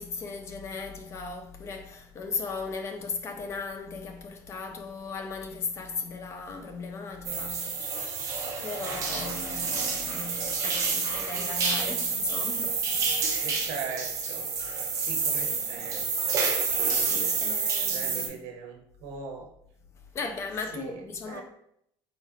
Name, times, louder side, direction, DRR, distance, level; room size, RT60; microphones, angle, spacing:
voice 1, 0.0-8.1 8.6-13.6 17.0-18.4 20.1-21.4, left 4 dB, 30° left, 0.4 m, -37 dB
sound 1, 7.2-18.3, right 5 dB, 35° right, 0.7 m, -29 dB
voice 2, 13.4-14.5 14.9-16.5 16.9-17.1 17.9-19.5 20.7-20.9 21.3-21.4, right 5 dB, 80° right, 0.8 m, -40 dB
4.0 x 4.0 x 2.4 m
cardioid pair, 170°, 9 cm